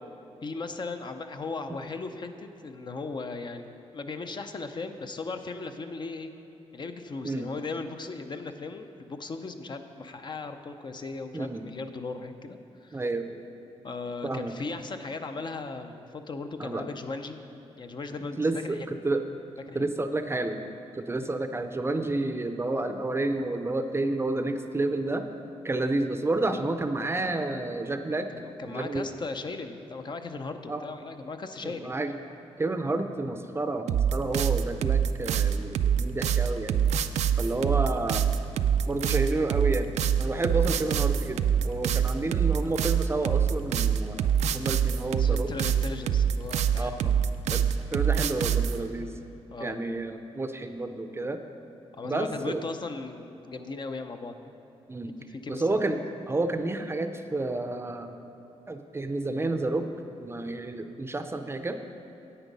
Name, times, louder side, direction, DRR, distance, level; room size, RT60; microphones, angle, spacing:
voice 1, 0.4-6.3 6.7-13.0 13.8-17.4 17.8-18.8 19.7-19.9 28.3-32.0 45.2-47.1 47.7-48.1 49.5-49.8 51.9-54.5 55.3-55.9, left 3 dB, 40° left, 7 dB, 0.6 m, -37 dB
voice 2, 11.3-11.7 12.9-13.3 14.2-14.5 16.6-16.8 18.4-19.2 19.7-20.6 20.9-25.3 25.6-28.3 28.6-29.1 30.7-30.8 31.6-32.1 32.6-36.8 37.4-38.2 38.9-39.9 40.2-45.5 46.8-47.2 47.5-47.6 47.9-49.1 49.6-51.4 52.0-52.6 54.9-55.1 55.5-58.2 58.7-59.9 60.2-61.8, right 2 dB, 20° right, 8 dB, 0.6 m, -30 dB
sound 1, 33.9-48.8, right 8 dB, 80° right, 0.4 m, -24 dB
9.9 x 8.1 x 5.4 m, 3.0 s
cardioid pair, 100°, 11 cm